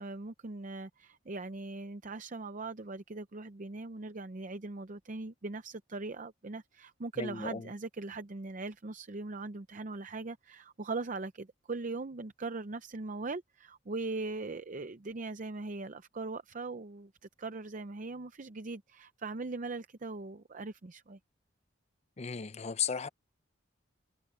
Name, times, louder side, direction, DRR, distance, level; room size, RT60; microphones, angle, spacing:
voice 1, 0.0-17.1 17.4-21.2, right 3 dB, 40° right, 0.6 m, -40 dB
voice 2, 7.2-7.6 22.2-23.1, left 7 dB, 35° left, 0.5 m, -35 dB
head